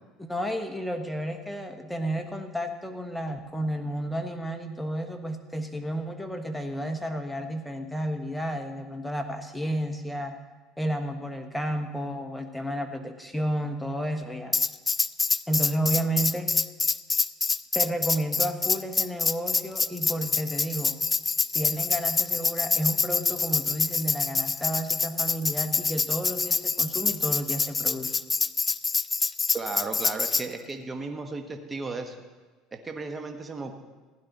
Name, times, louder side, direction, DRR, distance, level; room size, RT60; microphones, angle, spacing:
voice 1, 0.2-10.4 10.8-14.6 15.5-16.5 17.7-21.0 21.5-28.2, right 1 dB, 5° left, 6 dB, 1.2 m, -31 dB
Tambourine, 14.5-30.5, left 4 dB, 20° left, 0.3 m, -26 dB
voice 2, 29.5-32.2 32.7-33.7, right 3 dB, 20° right, 5 dB, 1.1 m, -35 dB
15.5 x 11.0 x 4.1 m, 1.3 s
supercardioid pair, 110°, 0 cm